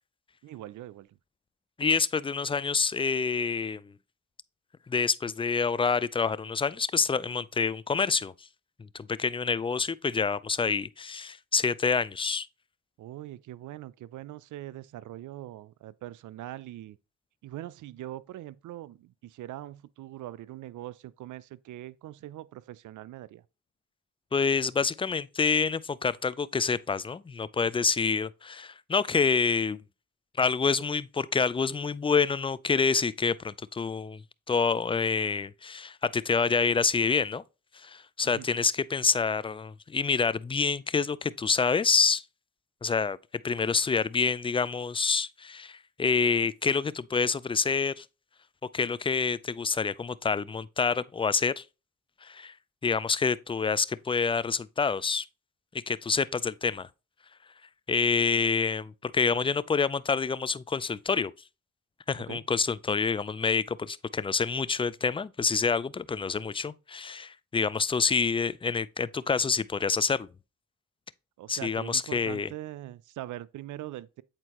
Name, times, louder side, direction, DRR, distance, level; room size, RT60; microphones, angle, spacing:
voice 1, 0.4-1.2 13.0-17.0 17.4-23.4 38.2-38.5 62.2-62.5 71.4-74.2, right 14 dB, 80° right, 0.5 m, -42 dB
voice 2, 1.8-3.9 4.9-8.3 8.9-12.5 24.3-29.8 30.4-34.2 34.5-37.4 37.7-42.2 42.8-43.2 43.4-48.1 48.7-51.6 52.2-52.5 52.8-55.3 55.9-56.9 57.9-61.3 62.1-70.3 71.5-72.5, left 5 dB, 20° left, 0.3 m, -27 dB
8.1 x 4.4 x 2.9 m
cardioid pair, 65°, 30 cm